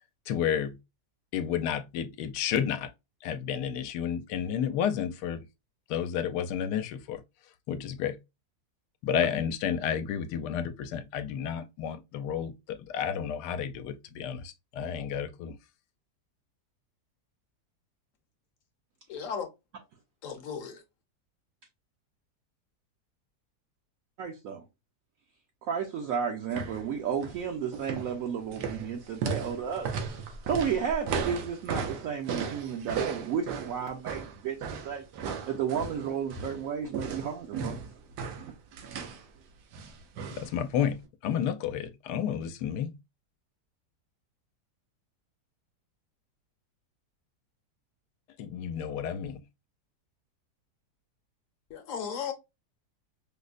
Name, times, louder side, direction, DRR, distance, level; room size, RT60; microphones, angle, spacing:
voice 1, 0.3-0.8 1.3-2.9 3.2-5.4 5.9-7.2 7.7-8.2 9.0-15.6 40.3-41.0 41.2-42.9 48.4-49.4, left 8 dB, 80° left, 1.1 m, -31 dB
voice 2, 19.1-19.5 20.2-20.8 51.7-52.3, left 7 dB, 60° left, 1.0 m, -35 dB
voice 3, 24.2-24.6 25.6-35.0 35.5-37.8 38.4-38.5, right 7 dB, 70° right, 0.9 m, -33 dB
sound 1, 26.5-26.8 27.1-27.4 27.7-36.6 36.9-39.2 39.7-40.5 40.8-40.9, right 5 dB, 90° right, 1.3 m, -35 dB
5.1 x 2.1 x 2.4 m
omnidirectional pair, 1.8 m